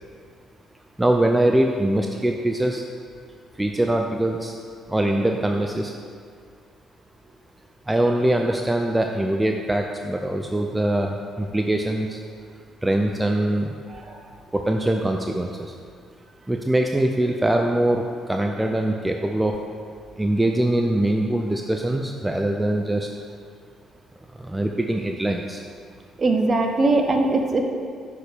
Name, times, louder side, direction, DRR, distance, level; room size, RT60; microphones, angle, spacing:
voice 1, 1.0-2.8 3.6-4.5 4.9-5.9 7.9-12.2 12.8-13.7 14.5-15.7 16.5-18.0 18.3-19.5 20.2-23.1 24.4-25.6, right 1 dB, 15° right, 2 dB, 0.5 m, -22 dB
voice 2, 26.2-27.6, right 2 dB, 40° right, 4 dB, 0.8 m, -20 dB
5.8 x 5.2 x 5.1 m, 2.1 s
hypercardioid pair, 45°, 0 cm